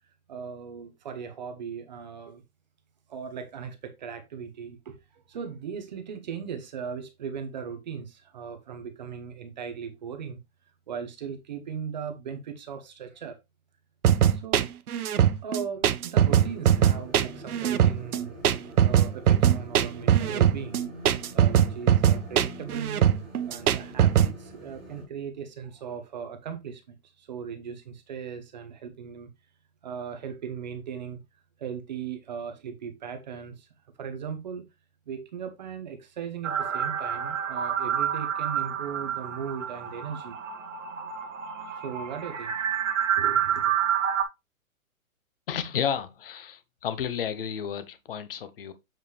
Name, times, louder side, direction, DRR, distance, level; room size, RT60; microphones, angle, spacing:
voice 1, 0.3-2.4 3.1-10.4 10.9-13.4 14.3-14.7 15.4-18.4 18.8-20.8 21.3-23.0 23.5-29.3 29.8-31.2 31.6-33.7 34.0-34.6 35.1-40.4 41.7-42.6 43.2-43.8, right 7 dB, 30° right, 0.9 m, -38 dB
sound 1, 14.0-24.3, right 10 dB, 90° right, 0.8 m, -21 dB
sound 2, 16.2-25.0, right 1 dB, 5° left, 0.5 m, -45 dB
sound 3, 36.4-44.2, right 9 dB, 60° right, 1.5 m, -29 dB
voice 2, 45.5-48.7, left 8 dB, 40° left, 0.8 m, -32 dB
7.7 x 5.0 x 3.3 m
hypercardioid pair, 170°, 43 cm